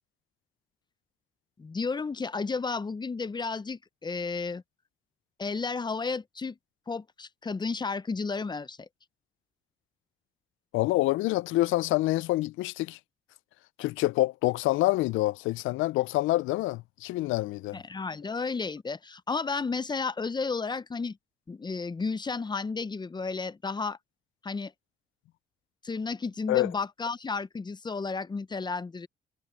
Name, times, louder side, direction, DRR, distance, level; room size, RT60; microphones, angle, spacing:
voice 1, 1.6-4.6 5.4-6.6 6.9-8.9 17.7-21.2 21.5-24.0 24.4-24.7 25.8-29.1, left 4 dB, 20° left, 0.6 m, -32 dB
voice 2, 10.7-13.0 13.8-17.8 26.5-26.7, left 17 dB, 90° left, 0.4 m, -26 dB
cardioid pair, 90°, 20 cm